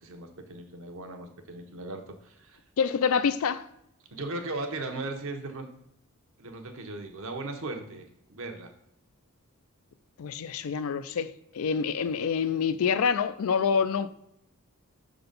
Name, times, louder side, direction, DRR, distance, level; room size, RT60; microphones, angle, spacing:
voice 1, 0.0-2.6 4.1-5.7 6.4-8.7, right 2 dB, 60° right, 0.9 m, -37 dB
voice 2, 2.8-3.7 10.2-14.1, left 6 dB, 65° left, 0.4 m, -27 dB
5.7 x 3.9 x 5.3 m
head